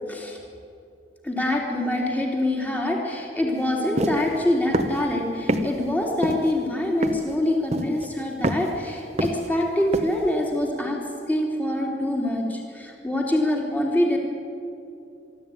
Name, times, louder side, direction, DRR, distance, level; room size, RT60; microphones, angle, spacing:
voice 1, 1.2-11.0 11.3-14.2, left 1 dB, 10° left, -1 dB, 3.4 m, -25 dB
sound 1, 4.0-4.2 4.7-5.0 5.5-5.7 6.2-6.5 7.0-7.3 7.7-8.1 8.4-8.7 9.2-9.6 9.9-10.1, right 1 dB, 40° right, 1.2 m, -25 dB
24.5 x 13.0 x 9.4 m, 2.7 s
head